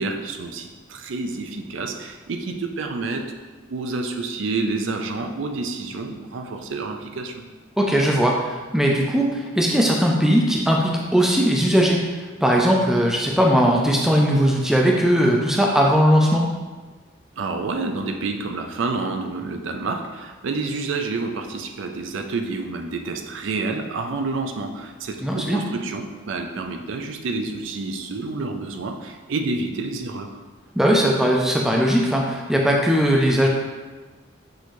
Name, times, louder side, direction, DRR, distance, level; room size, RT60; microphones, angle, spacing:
voice 1, 0.0-3.3 3.6-7.5 17.3-30.4, right 3 dB, 75° right, 5 dB, 0.4 m, -29 dB
voice 2, 7.8-16.5 25.2-25.6 30.8-33.5, equal, ahead, -1 dB, 0.3 m, -19 dB
6.2 x 2.7 x 3.0 m, 1.3 s
head